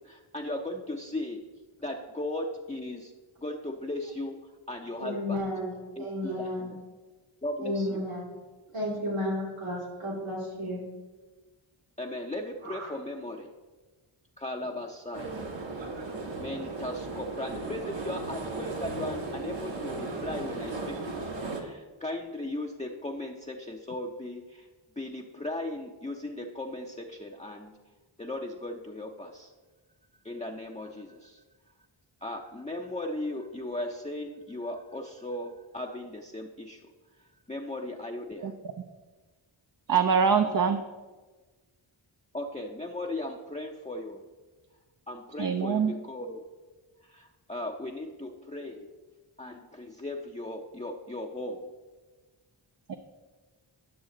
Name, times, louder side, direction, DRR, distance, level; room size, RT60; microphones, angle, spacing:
voice 1, 0.0-1.4 1.8-3.1 3.4-4.4 4.7-5.4 6.0-6.4 7.4-8.1 12.0-13.5 14.4-15.5 16.3-24.7 25.0-27.7 28.2-29.5 30.2-31.4 32.2-36.8 37.5-38.5 42.3-44.2 45.1-46.4 47.1-48.9 49.4-51.6, left 1 dB, 15° left, 0 dB, 0.6 m, -37 dB
voice 2, 5.0-6.7 7.6-8.3 8.7-10.8 12.6-12.9, left 1 dB, 85° right, -5 dB, 3.0 m, -33 dB
sound 1, 15.1-21.6, right 3 dB, 65° right, 1.2 m, -36 dB
voice 3, 39.9-40.8 45.4-45.9 52.9-53.0, right 6 dB, 45° right, 6 dB, 0.6 m, -24 dB
10.5 x 6.2 x 3.8 m, 1.3 s
cardioid pair, 45°, 49 cm